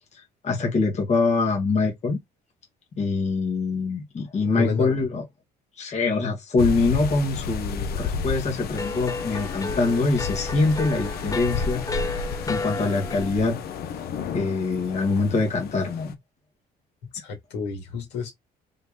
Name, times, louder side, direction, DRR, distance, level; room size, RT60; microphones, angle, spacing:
voice 1, 0.4-2.2 3.0-5.2 5.8-13.6 14.3-16.1, left 3 dB, 40° left, 2.0 m, -24 dB
voice 2, 4.6-5.0 17.1-18.3, left 5 dB, 85° left, 2.5 m, -29 dB
sound 1, 6.6-16.1, left 5 dB, 65° left, 1.0 m, -32 dB
sound 2, 8.7-13.5, left 3 dB, 20° left, 0.9 m, -33 dB
4.0 x 3.3 x 3.8 m
cardioid pair, 110°, 17 cm